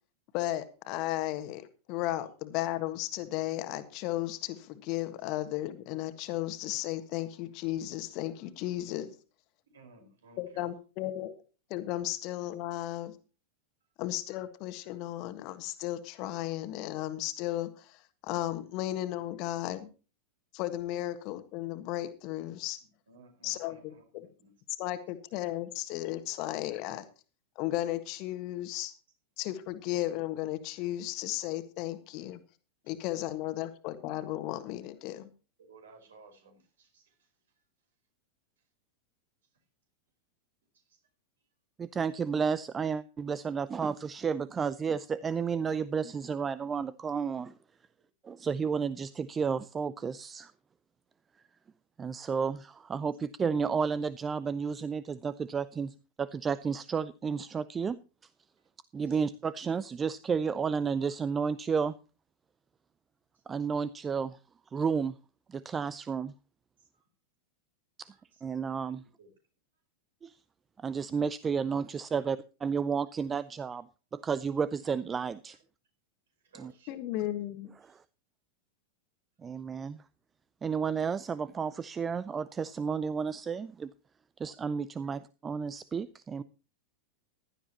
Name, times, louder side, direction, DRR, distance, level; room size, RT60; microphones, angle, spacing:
voice 1, 0.3-9.1 10.4-11.3 11.7-13.1 14.0-19.9 20.5-22.8 23.4-24.3 24.8-27.0 27.5-28.9 29.4-32.4 32.9-35.3 76.9-77.7, left 15 dB, 40° left, 10 dB, 1.6 m, -35 dB
voice 2, 9.7-10.7 22.8-24.5 33.4-33.6 35.6-37.3 40.7-41.0 59.1-59.2 66.8-67.0 68.1-68.4 69.0-69.3 76.4-76.9 77.8-78.0, right 3 dB, 65° right, 5 dB, 4.8 m, -58 dB
voice 3, 41.8-47.5 48.2-50.5 52.0-58.0 58.9-61.9 63.5-64.4 64.7-65.2 65.5-66.3 68.0-68.1 68.4-69.0 70.2-70.3 70.8-73.9 74.1-75.6 76.6-76.7 77.9-78.0 79.4-80.0 80.6-83.9 84.4-86.4, right 6 dB, 20° right, 18 dB, 0.5 m, -32 dB
16.0 x 12.0 x 2.9 m, 0.35 s
figure-of-eight pair, 90°, 0 cm